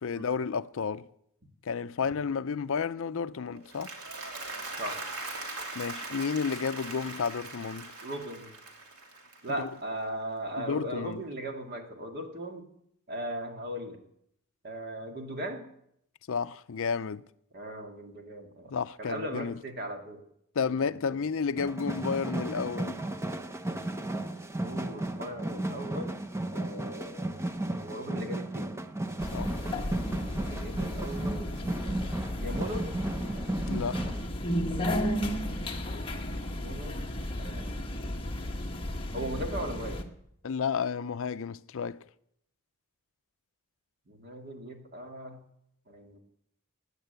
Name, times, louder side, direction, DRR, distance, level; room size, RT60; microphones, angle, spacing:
voice 1, 0.0-1.1 1.7-4.0 5.8-7.9 9.6-9.7 10.6-11.2 16.3-17.2 18.7-19.6 20.6-23.0 29.3-29.6 33.7-34.1 40.4-42.0, left 6 dB, 60° left, 0.5 m, -32 dB
Applause, 3.5-9.9, right 3 dB, 85° right, 2.7 m, -40 dB
voice 2, 8.0-8.5 9.4-12.7 13.1-14.0 14.6-15.6 17.5-20.2 20.6-21.3 24.6-26.2 26.5-28.8 30.3-31.6 31.8-32.0 32.4-32.9 36.5-37.0 37.4-37.7 39.1-40.0 44.1-45.4 45.9-46.2, right 1 dB, 45° right, 2.1 m, -38 dB
sound 1, 21.6-34.3, right 1 dB, 10° right, 0.7 m, -34 dB
sound 2, 29.2-40.0, equal, 25° left, 1.3 m, -34 dB
16.0 x 9.6 x 8.0 m
head